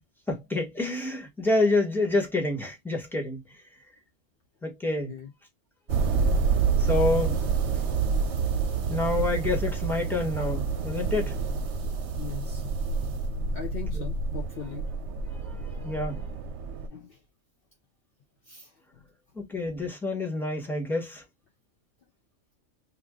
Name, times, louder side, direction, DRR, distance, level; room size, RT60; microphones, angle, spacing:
voice 1, 0.3-3.6 4.6-5.1 6.8-7.4 8.9-11.4 13.9-14.1 15.4-16.2 19.3-21.2, left 2 dB, ahead, 1.3 m, -28 dB
sound 1, 5.9-16.9, right 5 dB, 70° right, 1.0 m, -28 dB
voice 2, 12.2-12.6 13.5-14.9 16.9-17.2 18.5-18.7, left 6 dB, 55° left, 0.8 m, -40 dB
2.9 x 2.6 x 3.6 m
omnidirectional pair, 1.3 m